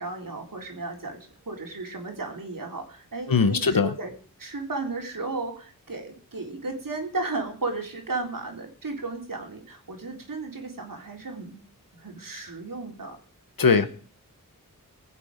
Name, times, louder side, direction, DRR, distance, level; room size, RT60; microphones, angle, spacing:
voice 1, 0.0-4.1 4.4-11.7 11.9-13.2, right 3 dB, 70° right, 2 dB, 3.5 m, -34 dB
voice 2, 3.3-3.9 13.6-13.9, left 5 dB, 75° left, 12 dB, 1.2 m, -20 dB
21.0 x 7.5 x 5.1 m, 0.44 s
cardioid pair, 45°, 35 cm